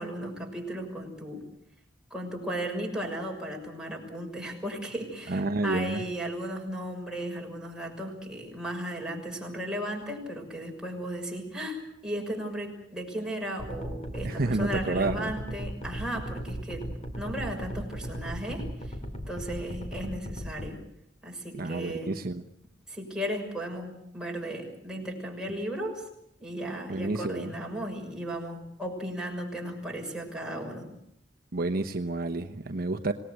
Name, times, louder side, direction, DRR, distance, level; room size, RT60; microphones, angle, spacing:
voice 1, 0.0-1.4 2.1-16.9 17.2-18.9 19.3-20.8 21.2-22.1 22.9-26.0 26.4-30.9, right 1 dB, 5° right, 0 dB, 6.3 m, -35 dB
voice 2, 5.3-6.0 14.2-15.3 21.5-22.4 26.9-27.5 31.5-33.1, right 2 dB, 50° right, 7 dB, 1.1 m, -29 dB
sound 1, 13.6-20.7, equal, 35° left, 3.1 m, -36 dB
26.5 x 19.0 x 8.2 m, 0.77 s
head